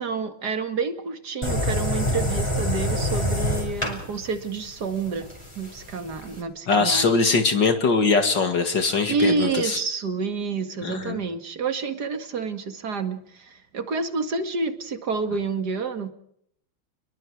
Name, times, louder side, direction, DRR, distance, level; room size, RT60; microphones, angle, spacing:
voice 1, 0.0-5.3 5.6-7.2 9.1-16.1, right 4 dB, 50° right, 8 dB, 2.6 m, -28 dB
sound 1, 1.4-6.4, left 1 dB, 10° left, 5.4 m, -27 dB
voice 2, 6.7-9.8 10.8-11.2, left 4 dB, 60° left, 7 dB, 2.7 m, -21 dB
29.0 x 21.5 x 4.8 m, 0.69 s
omnidirectional pair, 2.3 m